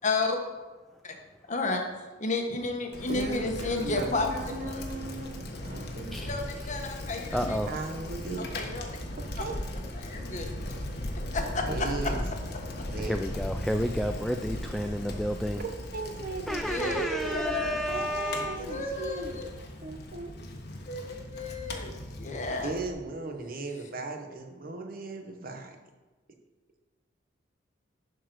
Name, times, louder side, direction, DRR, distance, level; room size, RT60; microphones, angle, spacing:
voice 1, 0.0-0.4 1.0-1.2 1.5-1.8 2.2-4.3 4.7-4.8 6.3-7.6 8.4-8.9 9.9-10.7 11.3-11.7 16.7-17.0 17.3-17.8 18.6-19.5 20.9-21.0 21.3-22.7, left 3 dB, 40° left, 3 dB, 1.3 m, -32 dB
Bicycle, 2.9-22.9, left 1 dB, 60° left, 1.4 m, -38 dB
voice 2, 3.1-6.2 7.7-8.6 9.4-9.5 11.7-12.2 12.9-13.2 15.6-19.5 19.8-20.3 22.6-25.8, right 3 dB, 50° right, 4 dB, 1.2 m, -37 dB
voice 3, 6.0-6.7 7.3-7.7 13.0-15.6 16.5-18.7, equal, ahead, 5 dB, 0.3 m, -31 dB
11.0 x 4.6 x 6.1 m, 1.2 s
head